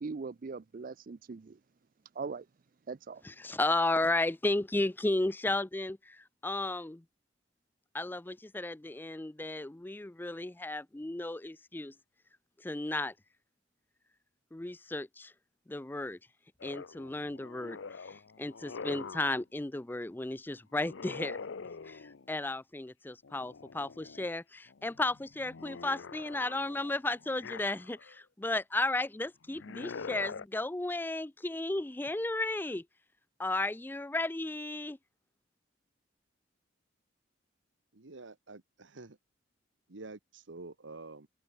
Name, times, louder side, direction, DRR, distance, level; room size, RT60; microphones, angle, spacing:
voice 1, 0.0-1.6 2.2-2.4 2.9-3.2, right 4 dB, 45° right, 0.4 m, -40 dB
voice 2, 3.2-7.0 7.9-11.9 12.6-13.1 14.5-15.3 15.7-16.2 16.6-21.4 21.9-22.0 22.3-32.8 33.4-35.0, left 2 dB, 10° left, 0.4 m, -34 dB
sound 1, 16.6-19.4 20.7-22.3 23.2-24.3 24.7-28.2 29.4-30.4, left 5 dB, 80° left, 0.7 m, -45 dB
voice 3, 37.9-39.2 39.9-41.3, right 3 dB, 80° right, 1.3 m, -48 dB
open air
head